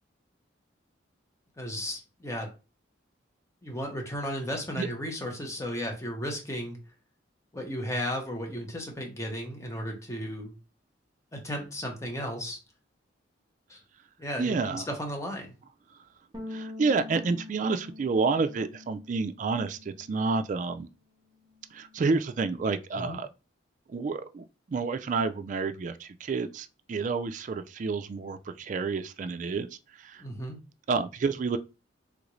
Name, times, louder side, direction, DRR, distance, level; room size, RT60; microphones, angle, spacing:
voice 1, 1.6-2.5 3.6-6.8 7.5-10.5 11.3-12.6 13.7-13.8 14.2-15.5 23.0-23.2 30.2-30.6, equal, 15° left, 0.8 m, -34 dB
voice 2, 14.4-14.8 16.5-20.9 21.7-23.3 23.9-30.2 30.9-31.6, right 4 dB, 40° right, 0.3 m, -29 dB
sound 1, 16.3-20.9 21.2-22.6, left 2 dB, 20° right, 0.7 m, -46 dB
3.5 x 2.6 x 3.0 m
head